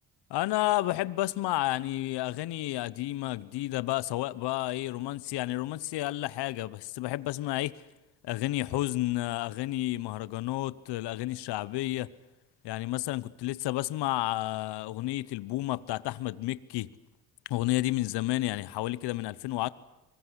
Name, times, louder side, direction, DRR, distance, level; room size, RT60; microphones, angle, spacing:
voice 1, 0.3-7.8 8.2-12.1 12.6-16.9 17.5-19.7, left 17 dB, 80° left, 1.0 m, -31 dB
24.5 x 21.5 x 9.8 m
supercardioid pair, 65°, 40 cm